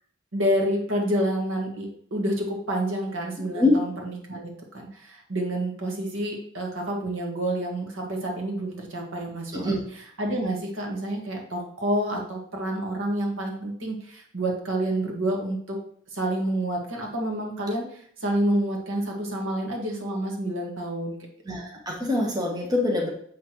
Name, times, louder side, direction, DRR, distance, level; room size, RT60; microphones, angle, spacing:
voice 1, 0.3-15.8 16.1-21.2, right 1 dB, 75° right, 0 dB, 1.6 m, -28 dB
voice 2, 21.5-23.1, left 2 dB, 20° right, -1 dB, 1.2 m, -24 dB
7.2 x 5.9 x 3.0 m, 0.64 s
head